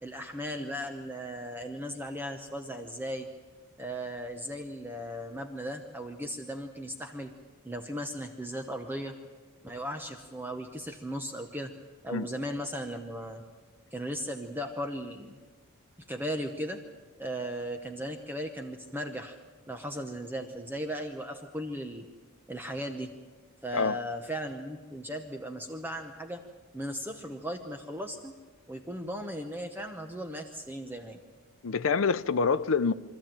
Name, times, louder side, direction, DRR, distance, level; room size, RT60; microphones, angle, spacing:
voice 1, 0.0-3.3 3.8-7.3 7.6-9.1 9.6-11.7 12.0-13.4 13.9-15.4 16.1-16.8 17.2-19.4 19.7-22.0 22.5-23.1 23.6-26.4 26.7-28.3 28.7-31.2, equal, 10° right, 0.9 m, -37 dB
voice 2, 31.6-32.9, left 5 dB, 60° left, 0.6 m, -26 dB
24.5 x 14.0 x 9.0 m
head